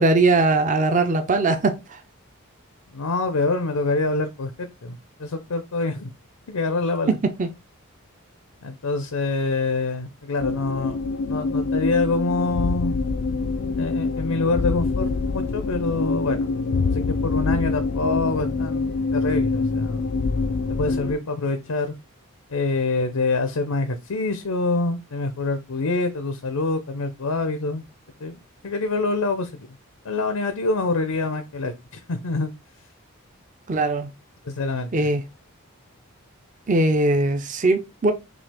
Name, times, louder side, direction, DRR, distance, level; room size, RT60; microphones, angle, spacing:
voice 1, 0.0-2.0 7.1-7.5 33.7-34.1 34.9-35.2 36.7-38.1, right 2 dB, 35° right, 0.5 m, -20 dB
voice 2, 2.9-6.1 6.5-7.2 8.6-11.0 11.3-12.9 13.8-16.5 16.9-20.1 20.7-21.9 22.5-27.8 28.2-29.5 30.0-32.5 34.4-35.1, left 3 dB, 85° left, 0.7 m, -26 dB
sound 1, 10.4-21.2, left 4 dB, 55° left, 0.3 m, -25 dB
6.1 x 2.4 x 3.4 m
head